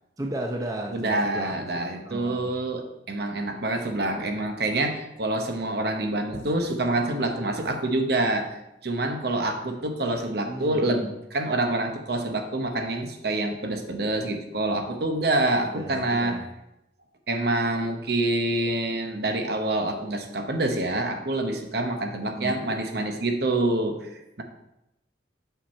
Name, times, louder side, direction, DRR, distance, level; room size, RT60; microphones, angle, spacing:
voice 1, 0.2-1.6 2.1-2.4 10.4-11.1 15.7-16.4 22.3-22.6, right 1 dB, 20° right, 1 dB, 0.6 m, -34 dB
voice 2, 0.9-16.4 17.3-24.4, right 2 dB, 60° right, 5 dB, 0.9 m, -27 dB
7.4 x 5.7 x 4.3 m, 0.88 s
head